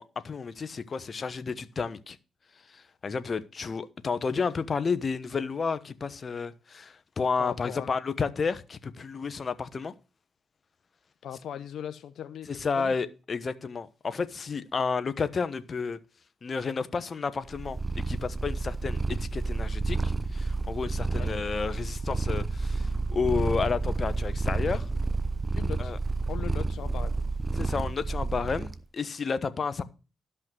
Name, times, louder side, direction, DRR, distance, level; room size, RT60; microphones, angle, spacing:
voice 1, 0.0-2.2 2.7-9.9 12.5-16.0 16.4-17.8 18.1-24.9 25.8-26.0 27.5-29.8, left 5 dB, 45° left, 1.0 m, -31 dB
voice 2, 7.4-7.9 11.2-12.9 21.1-21.3 25.5-26.0 26.3-27.1, left 9 dB, 70° left, 0.7 m, -39 dB
Purr, 17.5-28.8, right 3 dB, 25° right, 1.0 m, -30 dB
12.5 x 5.6 x 6.2 m
supercardioid pair, 60°, 0 cm